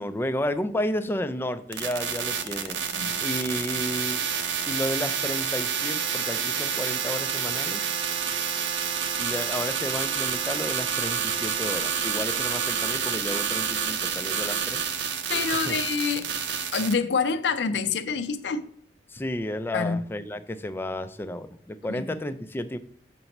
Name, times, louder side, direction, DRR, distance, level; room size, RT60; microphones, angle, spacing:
voice 1, 0.0-2.8 3.2-4.3 4.7-7.8 9.2-14.8 15.7-15.8 19.1-22.8, left 1 dB, 15° left, 0.3 m, -32 dB
sound 1, 1.7-16.9, right 7 dB, 90° right, 0.6 m, -28 dB
voice 2, 2.9-3.2 15.3-16.3 16.7-18.6 19.7-20.0 21.9-22.2, left 5 dB, 70° left, 0.5 m, -27 dB
6.7 x 2.9 x 5.3 m
head